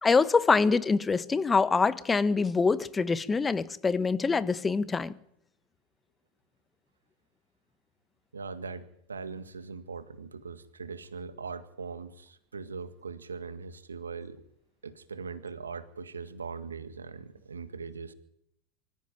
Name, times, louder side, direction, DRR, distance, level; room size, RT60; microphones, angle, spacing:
voice 1, 0.0-5.2, left 4 dB, 20° left, 1.3 m, -25 dB
voice 2, 8.3-14.4 14.8-18.1, right 5 dB, 85° right, 1.9 m, -40 dB
25.0 x 15.0 x 9.1 m
hypercardioid pair, 90°, 0 cm